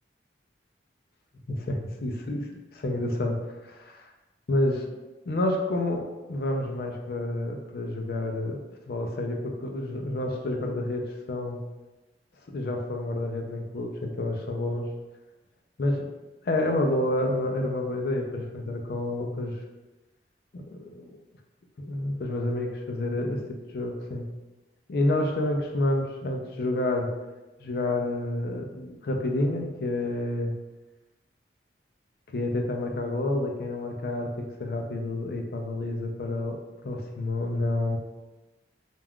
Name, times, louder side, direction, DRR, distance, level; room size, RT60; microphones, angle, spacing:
voice 1, 1.5-3.4 3.6-4.0 4.5-4.8 5.3-8.6 8.9-11.6 12.5-14.9 15.8-16.1 16.4-19.5 20.5-21.2 21.8-23.4 23.7-24.3 24.9-27.1 27.6-30.5 32.3-36.6 36.8-38.0, left 1 dB, 55° left, 2 dB, 0.4 m, -29 dB
2.3 x 2.2 x 3.5 m, 1.1 s
head